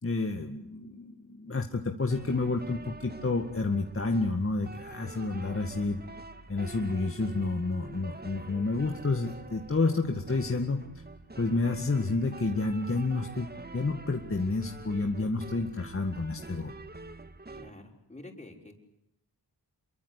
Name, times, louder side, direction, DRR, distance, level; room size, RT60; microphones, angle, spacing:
voice 1, 0.0-6.0 6.5-10.8 11.4-16.7, left 3 dB, 30° left, 3 dB, 2.1 m, -30 dB
sound 1, 2.1-17.7, right 3 dB, 25° right, 1.9 m, -46 dB
voice 2, 17.5-18.8, left 2 dB, 15° left, 1 dB, 6.3 m, -48 dB
28.0 x 23.5 x 8.5 m, 0.79 s
wide cardioid pair, 80°, 41 cm